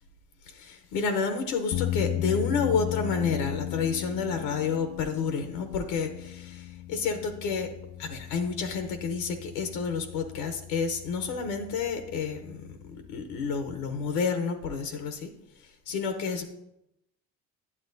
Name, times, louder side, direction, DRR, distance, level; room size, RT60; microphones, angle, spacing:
voice 1, 0.5-7.7 8.0-12.6 12.9-15.3 15.9-16.4, left 5 dB, 85° left, 7 dB, 0.9 m, -30 dB
sound 1, 1.7-14.2, left 13 dB, 65° left, 0.5 m, -37 dB
9.7 x 7.9 x 2.6 m, 0.87 s
supercardioid pair, 75°, 35 cm